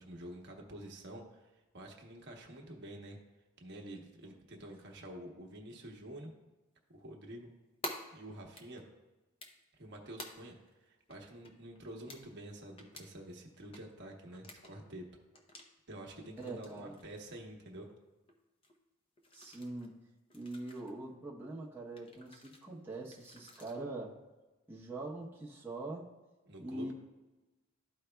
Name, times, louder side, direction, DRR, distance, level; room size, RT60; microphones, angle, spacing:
voice 1, 0.0-3.2 3.6-6.3 6.9-7.5 8.1-8.8 9.7-10.5 10.8-15.1 15.9-17.9 26.5-26.9, right 1 dB, 50° right, 1 dB, 1.0 m, -48 dB
sound 1, 7.8-8.0 8.6-8.9 9.4-9.8 10.2-10.3 10.7-10.8 11.1-11.2 11.4-11.8 12.1-12.2 12.8-13.0 13.5-13.8 14.4-14.9 15.3-15.7 16.2-17.0 17.4-18.0 18.3-18.4 18.6-18.8 19.2-19.9 20.3-20.9 22.0-22.7 23.1-23.7, left 1 dB, 25° left, 0.7 m, -48 dB
voice 2, 16.4-16.9 19.3-19.9 20.3-24.2 24.7-26.1 26.6-26.9, right 2 dB, 10° right, -5 dB, 0.9 m, -43 dB
12.5 x 4.8 x 2.3 m, 1.1 s
head